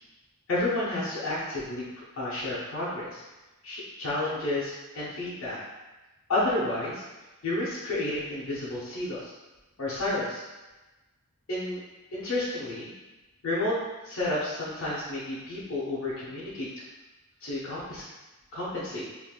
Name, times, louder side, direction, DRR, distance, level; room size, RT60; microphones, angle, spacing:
voice 1, 0.5-1.8 2.1-3.2 3.6-5.6 6.3-7.0 7.4-9.3 9.8-10.5 11.5-11.8 12.1-12.9 13.4-13.7 14.0-16.7 17.4-18.0 18.5-19.0, left 2 dB, 65° left, -8 dB, 0.7 m, -31 dB
3.5 x 2.5 x 2.3 m, 1.1 s
head